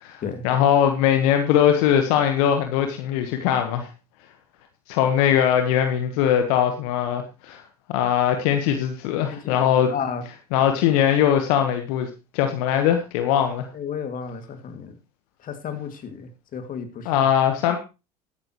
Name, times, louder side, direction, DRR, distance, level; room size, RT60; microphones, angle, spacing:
voice 1, 0.0-3.9 4.9-7.6 7.9-9.9 10.5-13.7 17.0-17.8, left 9 dB, 70° left, 6 dB, 1.4 m, -21 dB
voice 2, 9.9-10.2 13.7-14.9 15.4-17.1, left 7 dB, 45° left, 8 dB, 2.4 m, -32 dB
13.0 x 12.0 x 3.1 m, 0.29 s
hypercardioid pair, 65°, 20 cm